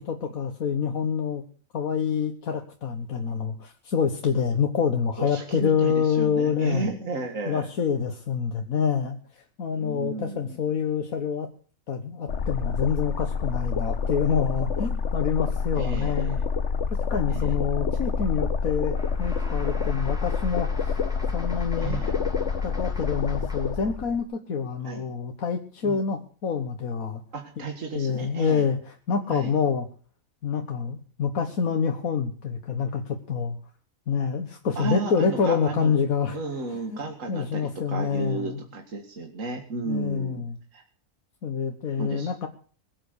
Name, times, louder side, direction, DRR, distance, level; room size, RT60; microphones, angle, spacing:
voice 1, 0.0-1.4 1.7-6.9 7.5-11.5 11.9-16.4 16.9-21.0 21.3-22.0 22.6-27.2 28.0-29.9 30.4-33.6 34.1-37.0 37.3-38.6 39.9-40.6 41.4-42.5, left 6 dB, 85° left, 4 dB, 1.8 m, -27 dB
voice 2, 5.2-7.7 9.7-10.6 15.8-16.5 17.3-17.5 21.8-22.2 24.8-25.0 25.8-26.0 27.3-28.6 29.3-29.5 34.8-35.9 36.3-40.5 40.7-40.8 42.0-42.3, right 3 dB, 65° right, 3 dB, 2.3 m, -33 dB
sound 1, 12.3-24.2, left 5 dB, 60° left, 1.3 m, -27 dB
sound 2, 18.9-23.9, equal, 5° right, 3.0 m, -45 dB
21.0 x 8.6 x 6.7 m, 0.42 s
omnidirectional pair, 1.4 m